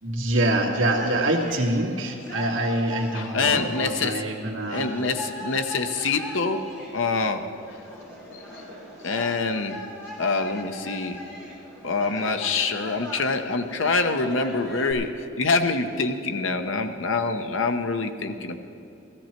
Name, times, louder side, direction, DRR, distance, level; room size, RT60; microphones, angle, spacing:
voice 1, 0.0-4.8, right 1 dB, 75° right, 0 dB, 1.8 m, -25 dB
sound 1, 0.9-14.9, equal, 15° left, 3.8 m, -40 dB
voice 2, 3.1-4.2 4.7-6.6 6.9-7.4 9.0-9.8 10.2-11.2 11.8-15.1 15.4-18.6, left 4 dB, 75° left, 7 dB, 0.9 m, -25 dB
15.5 x 15.0 x 4.5 m, 2.7 s
head